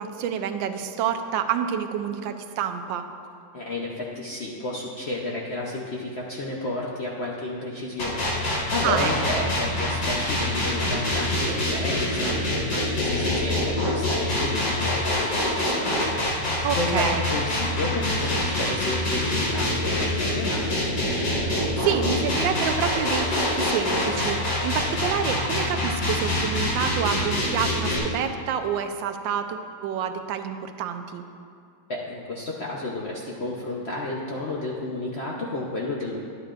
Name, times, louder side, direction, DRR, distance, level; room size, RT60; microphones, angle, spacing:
voice 1, 0.0-3.1 8.8-9.1 9.4-9.5 16.6-17.3 21.8-31.2, right 8 dB, 85° right, 7 dB, 1.3 m, -28 dB
voice 2, 3.5-20.9 31.9-36.2, left 2 dB, 60° left, -3 dB, 0.7 m, -32 dB
sound 1, 8.0-28.0, left 1 dB, 80° left, 2.4 m, -25 dB
11.0 x 9.5 x 2.5 m, 2.3 s
omnidirectional pair, 2.0 m